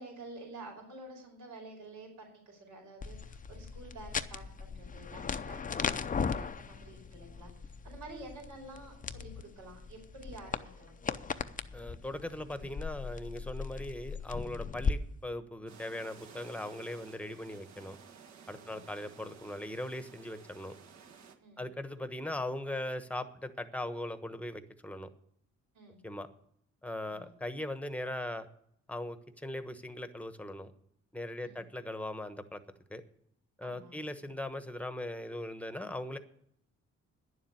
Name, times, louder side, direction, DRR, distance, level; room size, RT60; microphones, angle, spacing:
voice 1, 0.0-11.0 18.6-18.9 21.4-21.6 25.7-26.0 27.0-27.3 31.4-31.6 33.6-34.0, right 2 dB, 80° right, 0 dB, 4.9 m, -50 dB
sound 1, 3.0-14.9, left 5 dB, 25° left, 0.6 m, -38 dB
voice 2, 11.7-18.0 18.5-20.7 21.6-25.1 26.0-26.3 26.8-28.5 28.9-30.7 31.1-32.6 32.9-33.0 33.6-36.2, left 1 dB, 5° left, 10 dB, 1.1 m, -39 dB
sound 2, 15.7-21.4, right 6 dB, 60° right, 1.7 m, -54 dB
10.5 x 7.3 x 9.5 m, 0.70 s
cardioid pair, 90°, 30 cm